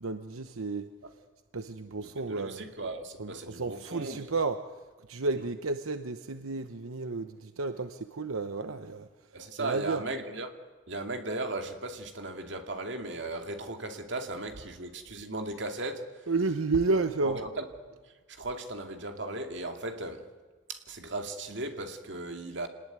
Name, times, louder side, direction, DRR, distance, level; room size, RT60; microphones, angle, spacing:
voice 1, 0.0-0.9 1.5-2.7 3.2-4.6 5.1-9.1 9.6-10.0 16.3-17.4, right 3 dB, 85° right, 1.0 m, -31 dB
voice 2, 2.0-4.2 5.4-5.5 9.3-10.5 10.9-16.1 16.9-17.7 18.3-20.3 20.7-22.7, right 2 dB, 60° right, 2.4 m, -37 dB
26.5 x 19.5 x 9.5 m
head